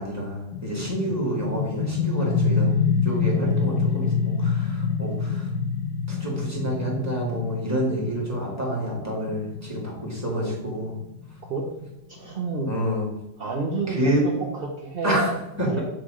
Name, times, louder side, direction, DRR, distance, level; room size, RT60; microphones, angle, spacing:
voice 1, 0.0-2.7 3.0-5.5 6.1-11.0 12.6-13.1 13.9-14.3 15.0-15.3 15.6-15.8, right 1 dB, 10° right, -4 dB, 2.0 m, -28 dB
sound 1, 0.5-12.0, left 5 dB, 75° left, 1.3 m, -27 dB
voice 2, 11.4-12.7 13.4-15.8, right 3 dB, 50° right, -2 dB, 0.7 m, -30 dB
7.9 x 3.4 x 4.9 m, 0.90 s
omnidirectional pair, 2.0 m